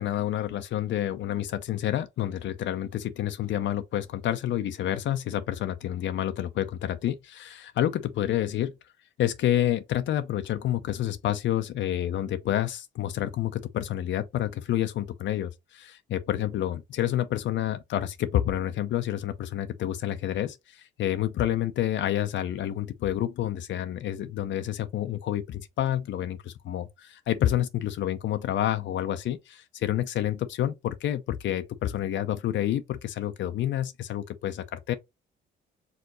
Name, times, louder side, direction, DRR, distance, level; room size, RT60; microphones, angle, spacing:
voice 1, 0.0-8.7 9.2-35.0, left 12 dB, 70° left, 0.6 m, -29 dB
4.7 x 3.7 x 3.0 m
cardioid pair, 90°, 20 cm